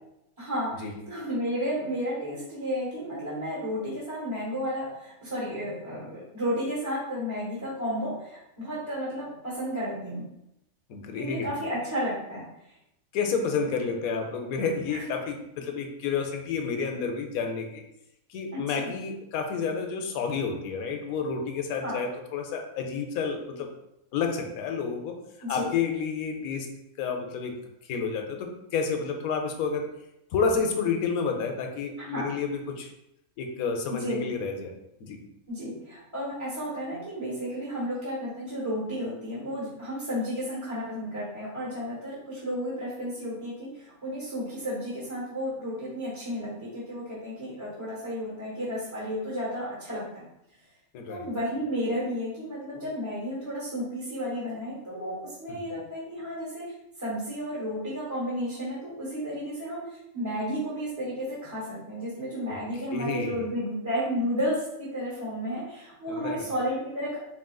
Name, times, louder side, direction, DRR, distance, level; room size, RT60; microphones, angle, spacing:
voice 1, 0.4-10.3 11.1-12.5 14.9-15.0 18.5-18.7 21.8-21.9 25.4-25.7 32.1-32.3 33.9-34.2 35.5-50.2 51.1-67.2, equal, 25° right, -6 dB, 1.1 m, -32 dB
voice 2, 10.9-11.5 13.1-17.8 18.3-23.7 24.1-25.2 25.5-26.7 27.0-27.6 27.8-29.9 30.3-32.9 33.4-34.7 35.0-35.2 50.9-51.3 55.5-55.6 62.5-62.6 62.9-63.5 66.1-66.5, left 5 dB, 85° left, 4 dB, 1.0 m, -30 dB
4.3 x 3.7 x 2.3 m, 0.83 s
omnidirectional pair, 1.5 m